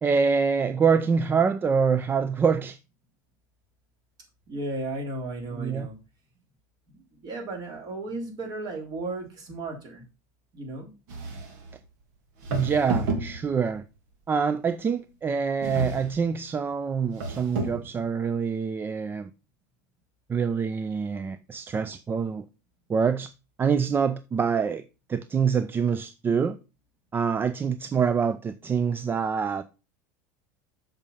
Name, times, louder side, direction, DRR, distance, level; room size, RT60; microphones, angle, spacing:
voice 1, 0.0-2.8 5.5-5.9 12.5-13.8 14.3-19.3 20.3-22.4 22.9-23.3 23.6-24.8 25.1-26.6 27.1-29.6, right 6 dB, 25° right, 0.5 m, -25 dB
voice 2, 4.5-5.9 6.9-10.0 10.5-10.9, right 2 dB, 45° right, 3.6 m, -35 dB
sound 1, 11.1-11.7 12.4-13.8 15.6-16.3 17.1-17.9, right 3 dB, 75° right, 2.2 m, -31 dB
7.1 x 5.2 x 5.5 m
supercardioid pair, 110°, 9 cm